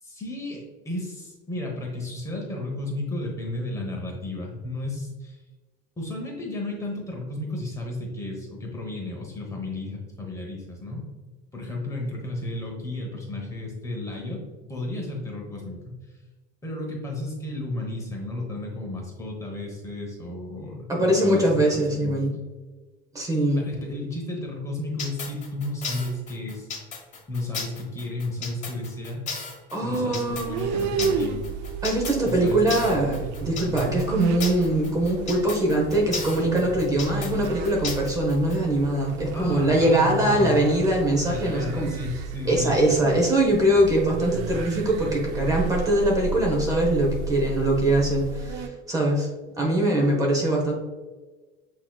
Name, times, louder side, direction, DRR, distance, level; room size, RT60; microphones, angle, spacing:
voice 1, 0.0-5.4 6.0-11.1 11.5-14.4 14.7-16.0 16.6-22.3 23.5-26.7 27.3-29.2 29.8-31.4 32.2-33.0 39.3-40.6 41.3-43.2 50.0-50.4, left 2 dB, 15° left, -1 dB, 0.9 m, -33 dB
voice 2, 20.9-22.3 23.1-23.7 29.7-30.8 31.8-41.9 42.5-49.3 49.6-50.7, right 1 dB, 15° right, -1 dB, 0.9 m, -22 dB
sound 1, 25.0-38.6, left 5 dB, 35° left, 1.2 m, -35 dB
sound 2, 30.3-48.7, right 5 dB, 55° right, 0.4 m, -33 dB
7.8 x 3.0 x 2.3 m, 1.2 s
cardioid pair, 155°, 21 cm